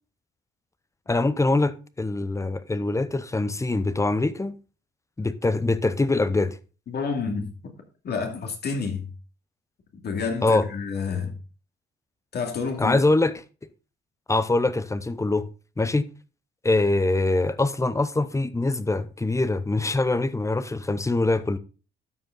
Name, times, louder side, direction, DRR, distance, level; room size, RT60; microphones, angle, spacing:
voice 1, 1.1-4.5 5.2-6.6 10.4-10.7 12.8-13.3 14.3-15.5 15.8-16.1 16.6-21.6, left 2 dB, 15° left, 0.7 m, -23 dB
voice 2, 6.9-7.5 8.0-9.1 10.0-11.3 12.3-13.0, left 5 dB, 55° left, 2.4 m, -29 dB
12.5 x 5.1 x 3.9 m
cardioid pair, 90°, 20 cm